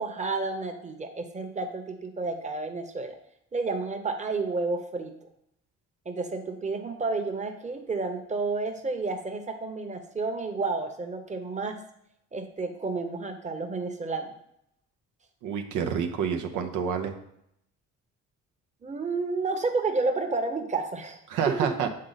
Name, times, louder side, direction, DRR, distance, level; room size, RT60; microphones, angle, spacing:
voice 1, 0.0-3.2 3.5-5.2 6.0-11.8 12.3-14.3 18.8-21.2 21.5-21.7, right 3 dB, 25° right, 5 dB, 0.9 m, -30 dB
voice 2, 15.4-17.1 21.3-21.9, right 7 dB, 90° right, 5 dB, 0.7 m, -28 dB
7.5 x 3.8 x 4.0 m, 0.75 s
cardioid pair, 90°, 30 cm